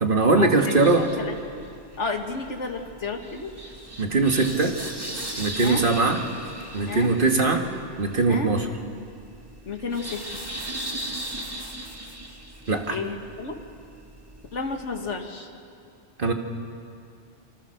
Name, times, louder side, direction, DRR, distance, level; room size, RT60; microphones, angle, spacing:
voice 1, 0.0-1.1 4.0-4.8 5.4-6.2 6.7-7.7 8.0-8.7 12.7-13.0 16.2-16.3, right 3 dB, 50° right, 4 dB, 1.9 m, -21 dB
sound 1, 0.7-15.2, right 1 dB, 20° right, 2.2 m, -38 dB
voice 2, 1.0-1.7 2.0-3.5 5.6-5.9 6.9-7.1 8.3-8.5 9.7-10.2 12.9-13.6 14.5-15.5, left 4 dB, 85° left, 4 dB, 2.1 m, -31 dB
27.5 x 25.0 x 6.6 m, 2.4 s
omnidirectional pair, 1.2 m